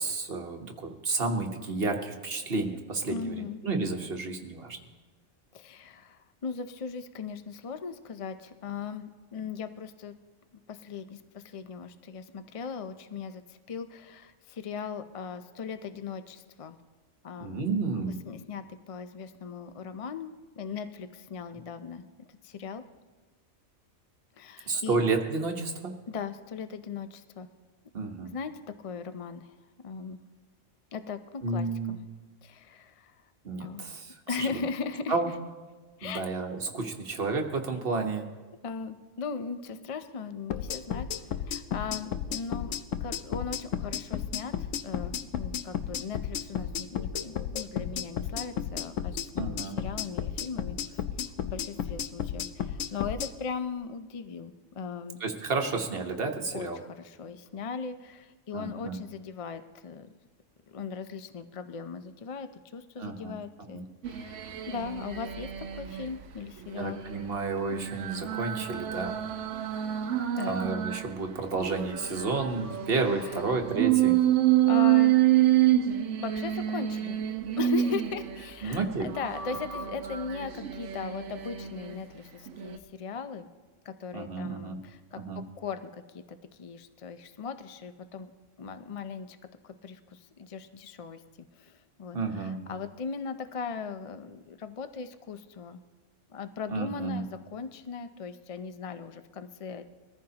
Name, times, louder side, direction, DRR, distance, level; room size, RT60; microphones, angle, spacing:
voice 1, 0.0-4.8 17.4-18.2 24.7-26.0 27.9-28.3 31.4-32.0 33.4-34.7 35.1-35.3 36.0-38.3 49.4-49.8 55.2-56.8 58.5-59.0 63.0-63.3 63.7-63.8 66.8-69.2 70.5-74.2 78.6-79.1 84.1-84.8 85.2-85.4 92.1-92.6 96.7-97.2, right 3 dB, 50° right, 3 dB, 1.3 m, -31 dB
voice 2, 3.1-3.6 5.5-10.2 10.7-16.8 17.2-17.7 17.9-22.8 24.4-25.0 26.1-27.5 28.3-29.5 29.8-30.2 30.9-32.0 32.4-33.2 33.6-33.8 34.3-35.3 36.0-36.2 38.6-51.0 51.4-55.2 56.5-60.1 60.7-67.0 70.3-70.7 73.1-73.4 74.6-75.2 76.2-77.2 77.6-83.5 83.9-88.3 88.6-89.4 89.6-91.2 91.5-95.8 96.3-99.8, left 5 dB, 50° left, 10 dB, 0.4 m, -38 dB
sound 1, 40.5-53.3, left 8 dB, 80° left, 1.0 m, -33 dB
sound 2, 64.0-66.1 66.6-71.1 71.5-78.5 79.0-82.0 82.5-82.8, right 12 dB, 70° right, 1.0 m, -28 dB
22.5 x 14.5 x 2.9 m, 1.3 s
omnidirectional pair, 1.3 m